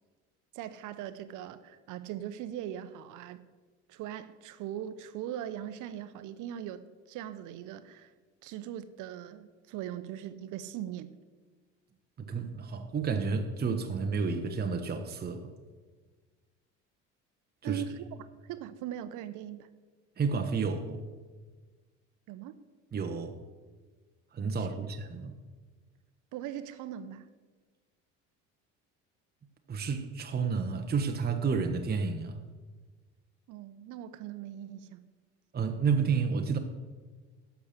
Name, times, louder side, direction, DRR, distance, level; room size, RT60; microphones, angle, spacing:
voice 1, 0.5-3.4 3.9-8.1 8.4-11.2 17.6-18.0 18.5-19.7 22.3-22.6 24.5-24.7 26.3-27.3 33.5-35.0, right 11 dB, 60° right, 13 dB, 0.8 m, -40 dB
voice 2, 12.2-15.4 17.6-17.8 20.2-21.0 22.9-23.4 24.3-25.3 29.7-32.4 35.5-36.6, right 5 dB, 30° right, 5 dB, 1.1 m, -30 dB
11.5 x 7.1 x 6.5 m, 1.4 s
supercardioid pair, 80°, 34 cm